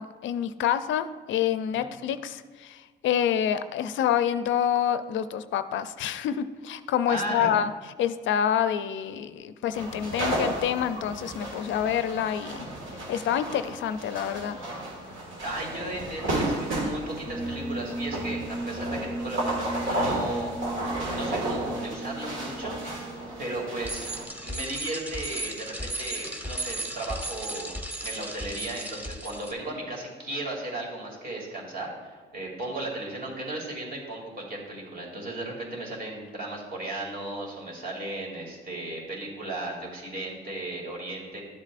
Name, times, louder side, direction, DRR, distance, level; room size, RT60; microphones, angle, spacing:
voice 1, 0.0-7.7 8.0-12.7 13.1-14.6, left 9 dB, 75° left, 11 dB, 0.4 m, -27 dB
voice 2, 7.1-7.5 15.4-23.0 23.4-24.0 24.4-27.7 28.0-41.4, right 2 dB, 50° right, -3 dB, 2.6 m, -35 dB
sound 1, 9.7-24.2, right 1 dB, 75° right, 1.9 m, -33 dB
sound 2, 17.2-24.7, right 2 dB, 10° left, 0.5 m, -36 dB
Bicycle, 23.8-29.5, right 1 dB, 10° right, 1.0 m, -35 dB
12.0 x 7.3 x 2.5 m, 1.4 s
cardioid pair, 90°, 20 cm